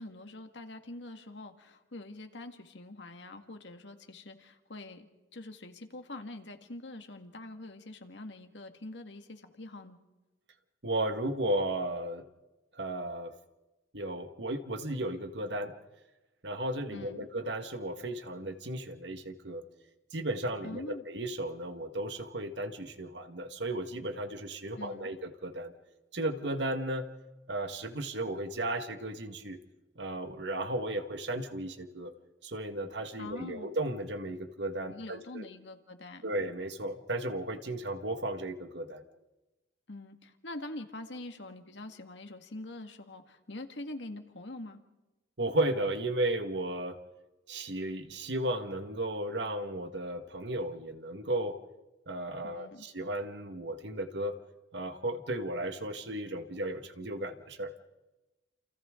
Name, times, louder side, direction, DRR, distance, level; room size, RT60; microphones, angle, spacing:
voice 1, 0.0-5.1 5.3-10.0 16.9-17.3 20.6-21.0 24.8-25.1 33.2-33.7 34.9-36.3 39.9-44.8 52.4-52.9, left 2 dB, 85° left, 6 dB, 1.9 m, -44 dB
voice 2, 10.8-12.3 12.7-13.3 13.9-15.7 16.4-19.6 20.1-25.7 26.1-27.1 27.5-29.6 30.0-32.1 32.4-35.4 36.2-39.0 45.4-47.0 47.5-51.6 52.1-54.4 54.7-57.7, right 1 dB, 75° right, 7 dB, 1.7 m, -34 dB
29.0 x 28.5 x 3.8 m, 1.1 s
head